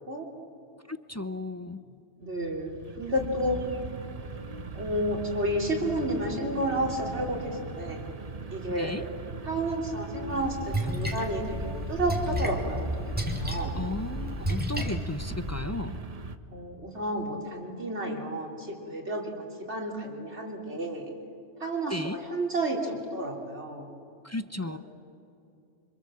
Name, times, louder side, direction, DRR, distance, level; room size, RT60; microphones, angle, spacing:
voice 1, 0.9-1.8 8.8-9.0 13.7-16.0 21.9-22.2 24.2-24.8, left 2 dB, 25° left, 11 dB, 0.3 m, -34 dB
sound 1, 2.2-16.4, right 4 dB, 35° right, 1.0 m, -40 dB
voice 2, 2.2-3.6 4.7-8.1 8.5-8.9 9.4-12.9 13.2-13.8 16.5-21.1 21.6-24.0 24.7-24.8, right 1 dB, 65° right, 0 dB, 3.5 m, -31 dB
Splash splatter, 10.3-15.6, equal, 10° right, 2.2 m, -32 dB
26.5 x 25.5 x 7.6 m, 2.6 s
omnidirectional pair, 1.2 m